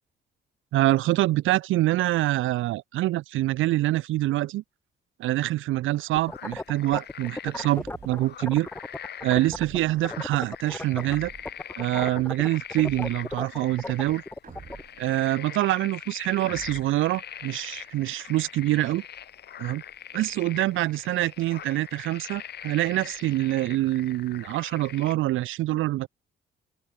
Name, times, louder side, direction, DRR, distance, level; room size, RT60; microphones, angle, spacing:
voice 1, 0.7-4.6 5.2-8.7 9.2-11.3 11.8-14.2 15.0-19.0 19.6-19.8 20.1-26.1, right 16 dB, 80° right, 0.7 m, -25 dB
sound 1, 5.9-25.2, left 10 dB, 55° left, 1.1 m, -42 dB
sound 2, 6.2-9.8 10.0-11.2 11.5-14.8, left 2 dB, 10° left, 0.7 m, -35 dB
sound 3, 7.7-8.3 9.4-10.1 11.0-11.6 12.8-13.4 14.4-15.1 16.4-17.1, right 6 dB, 45° right, 3.3 m, -47 dB
open air
cardioid pair, 90°, 20 cm